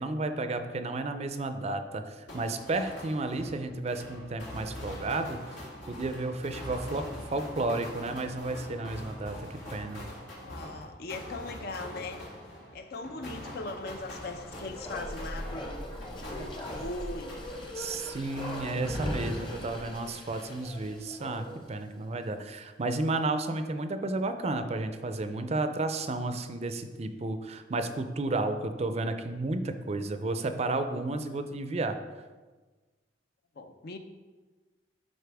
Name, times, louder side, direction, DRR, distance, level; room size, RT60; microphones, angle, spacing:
voice 1, 0.0-5.4 5.9-10.0 17.7-32.0, right 2 dB, 35° right, 8 dB, 0.5 m, -32 dB
sound 1, 2.3-18.0 18.4-19.7, equal, 85° left, 2.0 m, -44 dB
voice 2, 10.4-12.2 12.7-15.8 16.4-17.3 33.6-34.0, left 2 dB, 60° left, 7 dB, 0.6 m, -39 dB
Bark, 14.1-21.7 22.0-22.1, equal, 25° left, 1.0 m, -39 dB
11.5 x 4.2 x 3.5 m, 1.3 s
head